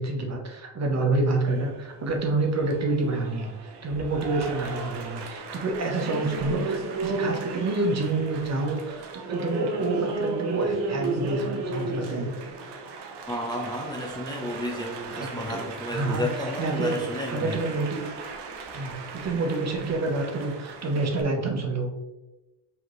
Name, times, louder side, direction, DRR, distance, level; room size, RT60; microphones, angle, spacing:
voice 1, 0.0-12.3 15.1-15.6 15.9-18.1 18.7-21.9, right 2 dB, 40° right, 2 dB, 0.9 m, -28 dB
Applause, 1.5-21.2, right 3 dB, 75° right, 0.8 m, -35 dB
voice 2, 13.3-17.6, left 1 dB, 10° left, -1 dB, 0.6 m, -32 dB
5.0 x 2.9 x 3.1 m, 1.0 s
cardioid pair, 100°, 42 cm